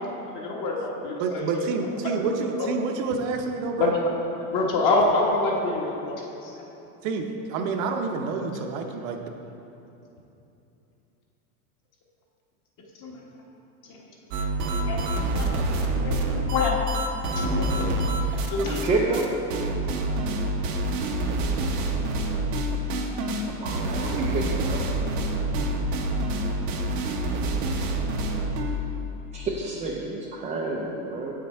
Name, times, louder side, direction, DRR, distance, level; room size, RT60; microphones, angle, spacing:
voice 1, 0.3-1.7 3.8-3.9 4.5-6.6 13.0-13.2 13.8-14.0 14.8-15.1 15.3-15.5 15.8-16.8 17.4-17.9 18.5-18.8, left 3 dB, 40° left, -2 dB, 1.5 m, -26 dB
voice 2, 1.2-3.9 7.0-9.3, right 4 dB, 60° right, 3 dB, 0.9 m, -28 dB
sound 1, 14.3-18.9 19.1-19.2 19.5-28.8, right 1 dB, 85° right, 1.0 m, -27 dB
voice 3, 18.6-19.2 23.6-24.8 29.3-31.3, right 3 dB, 15° right, -3 dB, 0.4 m, -29 dB
7.5 x 6.0 x 4.3 m, 2.9 s
supercardioid pair, 130°, 46 cm